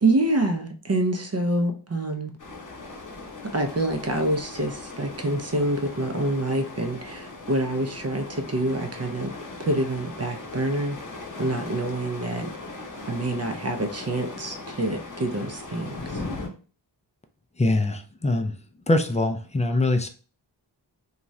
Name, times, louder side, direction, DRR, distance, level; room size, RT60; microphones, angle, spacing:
voice 1, 0.0-2.3 3.5-9.3 9.6-11.0 11.4-12.5 13.1-16.2, right 1 dB, 35° right, 5 dB, 0.5 m, -26 dB
sound 1, 2.4-16.5, left 3 dB, 45° left, 0.8 m, -39 dB
voice 2, 17.6-18.5 18.9-20.1, left 2 dB, 15° left, 6 dB, 0.4 m, -23 dB
2.6 x 2.4 x 3.1 m, 0.37 s
wide cardioid pair, 70°, 44 cm